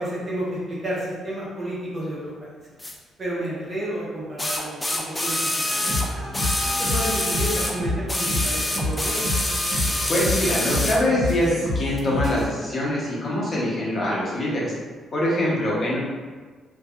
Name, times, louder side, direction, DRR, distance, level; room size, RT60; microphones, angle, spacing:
voice 1, 0.0-2.6 3.2-5.4 5.7-5.9 6.6-9.3, right 1 dB, 40° right, -6 dB, 0.8 m, -31 dB
sound 1, 2.8-2.9 4.4-7.8 8.1-11.0 12.0-12.1, left 1 dB, 15° left, 0.3 m, -26 dB
sound 2, 5.6-12.5, left 1 dB, 60° right, 1.1 m, -28 dB
voice 2, 10.1-14.7 15.1-16.0, left 1 dB, 40° left, -6 dB, 0.7 m, -24 dB
2.7 x 2.2 x 2.3 m, 1.5 s
cardioid pair, 90°, 0 cm